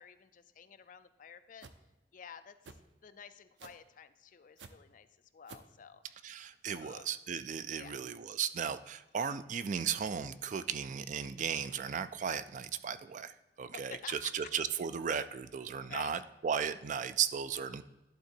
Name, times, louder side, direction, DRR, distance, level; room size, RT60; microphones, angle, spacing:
voice 1, 0.0-1.7 2.1-2.6 3.0-5.1 5.3-6.0 6.7-7.1 7.7-8.0 13.7-14.3 15.9-16.1, left 7 dB, 45° left, 12 dB, 0.4 m, -51 dB
sound 1, 1.6-1.8 2.6-2.8 3.6-3.9 4.6-4.7 5.5-5.7, right 5 dB, 90° right, 0.6 m, -50 dB
voice 2, 6.2-17.8, right 7 dB, 45° right, 13 dB, 0.3 m, -36 dB
11.0 x 3.9 x 4.4 m, 1.0 s
head